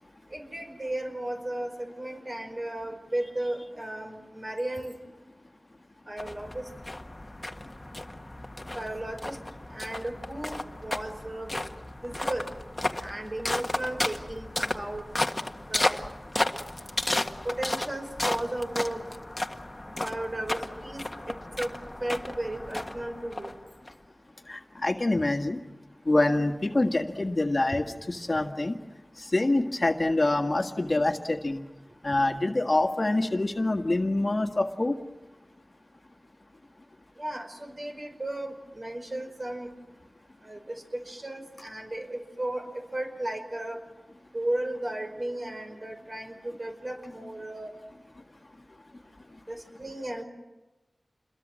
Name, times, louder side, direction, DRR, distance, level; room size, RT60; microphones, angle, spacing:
voice 1, 0.3-5.0 6.1-6.6 8.7-9.4 9.7-11.5 12.0-12.5 13.0-15.0 15.7-15.9 17.4-19.1 19.9-21.7 22.0-23.5 25.1-25.2 28.4-28.5 37.2-39.7 40.4-42.7 42.9-43.8 44.3-47.7 49.5-50.2, right 1 dB, 40° right, 5 dB, 5.1 m, -35 dB
sound 1, 6.2-23.9, left 1 dB, 25° left, 1.6 m, -33 dB
voice 2, 24.5-25.6 26.1-28.8 29.2-31.6 32.0-35.0, left 2 dB, 40° left, 4 dB, 1.8 m, -26 dB
28.0 x 22.0 x 7.7 m, 1.1 s
wide cardioid pair, 60°, 0 cm